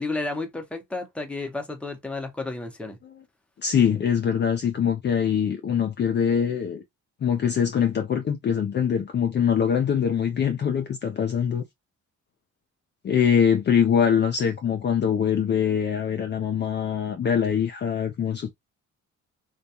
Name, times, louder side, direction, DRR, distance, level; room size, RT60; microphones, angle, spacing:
voice 1, 0.0-3.0, left 3 dB, 5° left, 0.7 m, -32 dB
voice 2, 3.6-6.8 7.2-11.6 13.0-18.5, left 8 dB, 35° left, 0.4 m, -23 dB
2.3 x 2.2 x 2.7 m
cardioid pair, 90°, 30 cm